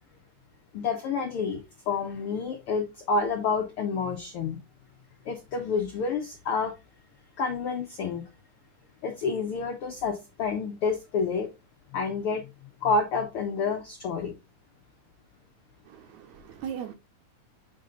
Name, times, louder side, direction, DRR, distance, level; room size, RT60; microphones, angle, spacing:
voice 1, 0.7-4.6 5.2-6.7 7.4-8.2 9.0-11.5 11.9-12.5 12.8-14.3, left 4 dB, 80° left, 1.2 m, -29 dB
voice 2, 15.9-16.9, right 8 dB, 75° right, 2.0 m, -38 dB
6.1 x 4.2 x 3.8 m
omnidirectional pair, 3.7 m